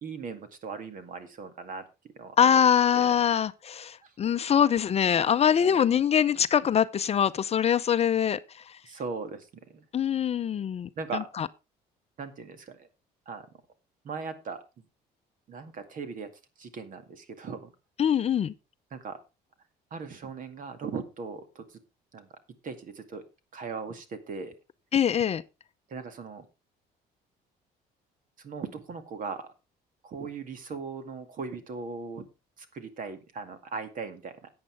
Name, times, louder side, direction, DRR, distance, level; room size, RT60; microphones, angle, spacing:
voice 1, 0.0-1.8 2.2-2.6 2.9-3.3 4.0-4.1 5.6-5.8 8.8-9.8 11.0-11.3 12.2-12.9 13.3-13.6 14.0-14.6 15.5-16.3 16.6-17.7 18.9-19.2 19.9-21.8 22.1-22.3 22.6-23.3 23.5-24.5 25.9-26.5 28.4-29.5 30.0-32.2 32.6-34.5, right 5 dB, 50° right, 2.2 m, -38 dB
voice 2, 2.4-8.4 9.9-10.9 11.4-11.5 18.0-18.5 24.9-25.4, left 8 dB, 40° left, 0.6 m, -23 dB
14.0 x 8.8 x 3.4 m
cardioid pair, 110°, 17 cm